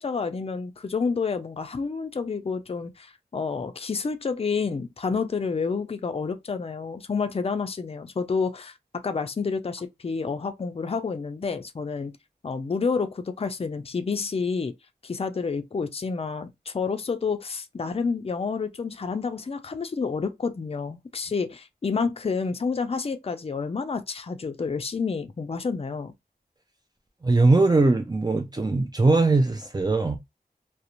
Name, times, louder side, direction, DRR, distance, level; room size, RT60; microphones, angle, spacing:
voice 1, 0.0-8.8 9.0-12.1 12.4-14.7 15.0-26.1, left 5 dB, 35° left, 0.4 m, -29 dB
voice 2, 27.2-30.2, right 3 dB, 25° right, 0.4 m, -20 dB
2.5 x 2.0 x 2.9 m
wide cardioid pair, 45°, 16 cm